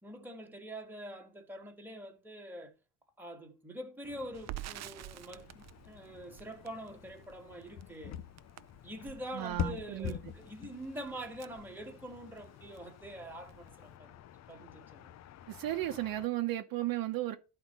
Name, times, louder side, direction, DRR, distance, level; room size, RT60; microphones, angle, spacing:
voice 1, 0.0-2.7 3.2-8.2 8.8-14.1 14.5-15.1, right 1 dB, 5° right, 1.7 m, -45 dB
sound 1, 4.0-16.3, left 9 dB, 45° left, 0.6 m, -46 dB
Crackle, 4.3-12.4 12.7-12.9 13.2-13.9, right 14 dB, 45° right, 0.6 m, -49 dB
voice 2, 9.3-10.2 15.5-17.4, right 15 dB, 60° right, 1.0 m, -34 dB
13.0 x 4.3 x 5.4 m
cardioid pair, 130°, 38 cm